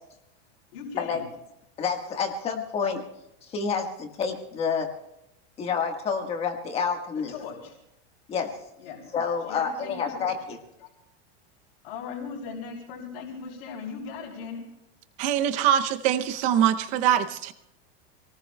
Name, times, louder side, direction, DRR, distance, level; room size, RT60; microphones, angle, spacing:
voice 1, 0.7-1.2 7.3-7.7 8.8-9.0 9.4-10.3 10.8-10.9 11.8-14.6, left 5 dB, 65° left, -2 dB, 3.1 m, -38 dB
voice 2, 1.8-3.1 3.5-4.9 5.6-7.3 8.3-8.5 9.1-10.6, left 6 dB, 20° left, 4 dB, 1.4 m, -28 dB
voice 3, 15.2-17.5, right 10 dB, 25° right, 11 dB, 0.6 m, -23 dB
27.0 x 19.0 x 2.2 m, 0.83 s
supercardioid pair, 180°, 33 cm